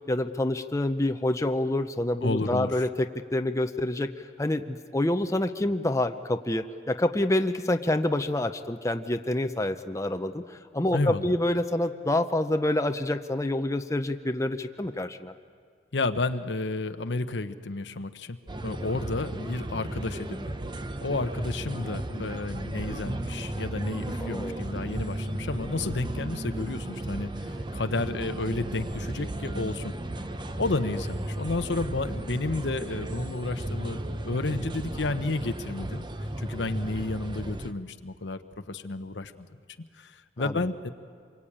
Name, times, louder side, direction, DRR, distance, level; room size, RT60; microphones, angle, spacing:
voice 1, 0.1-15.3 24.2-24.6 30.9-31.0 40.4-40.5, left 1 dB, 15° left, 7 dB, 0.7 m, -27 dB
voice 2, 2.2-2.8 10.9-11.3 15.9-18.4 18.6-20.5 21.0-29.9 30.6-36.1 36.4-39.5 40.0-40.9, left 2 dB, 80° left, 9 dB, 1.0 m, -31 dB
sound 1, 18.5-37.7, right 1 dB, 25° right, 0.9 m, -35 dB
27.0 x 23.0 x 8.8 m, 2.2 s
head